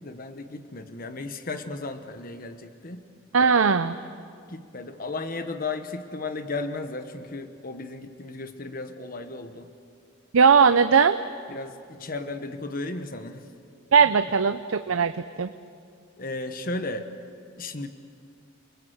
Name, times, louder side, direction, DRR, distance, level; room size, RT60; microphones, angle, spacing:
voice 1, 0.0-3.0 4.5-9.7 11.5-13.4 16.2-17.1 17.6-17.9, left 3 dB, 45° left, 8 dB, 1.1 m, -34 dB
voice 2, 3.3-4.0 10.3-11.2 13.9-15.5, right 6 dB, 80° right, 11 dB, 0.6 m, -19 dB
28.5 x 20.5 x 7.9 m, 2.3 s
head